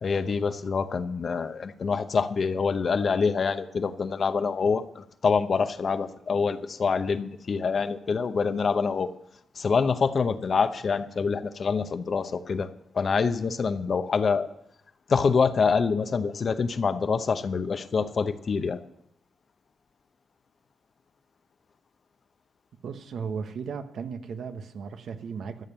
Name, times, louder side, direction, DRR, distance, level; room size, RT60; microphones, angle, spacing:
voice 1, 0.0-9.1 9.5-12.7 12.9-14.5 15.1-18.8, left 5 dB, 55° left, 10 dB, 0.9 m, -26 dB
voice 2, 22.8-25.6, right 6 dB, 75° right, 8 dB, 1.0 m, -35 dB
13.0 x 7.3 x 6.8 m, 0.77 s
cardioid pair, 80°, 0 cm